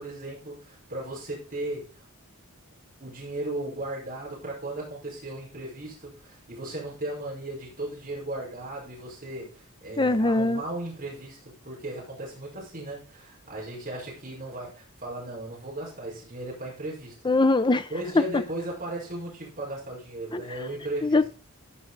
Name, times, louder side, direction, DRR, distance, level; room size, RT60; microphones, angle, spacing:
voice 1, 0.0-2.0 3.0-17.2 17.9-21.2, right 1 dB, 40° right, 5.0 m, -36 dB
voice 2, 10.0-10.6 17.2-17.9 18.1-18.4 20.3-20.6 21.0-21.3, left 2 dB, 20° left, 0.6 m, -22 dB
14.0 x 5.8 x 4.0 m
head